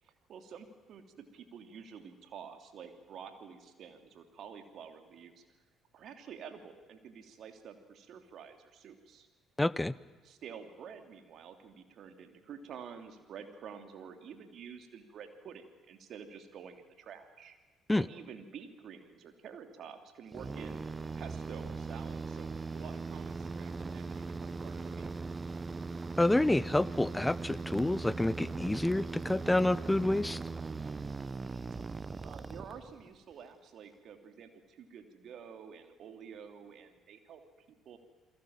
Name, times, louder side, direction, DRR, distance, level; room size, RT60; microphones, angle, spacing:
voice 1, 0.0-5.4 5.9-9.3 10.2-17.5 17.9-20.8 21.1-25.2 32.2-37.4 37.8-38.0, right 7 dB, 55° right, 7 dB, 3.1 m, -49 dB
voice 2, 9.6-9.9 17.9-18.1 26.2-30.4, left 2 dB, 15° left, 19 dB, 0.9 m, -28 dB
sound 1, 20.3-33.2, right 4 dB, 30° right, 0.9 m, -39 dB
29.0 x 22.0 x 7.5 m, 1.3 s
hypercardioid pair, 50°, 0 cm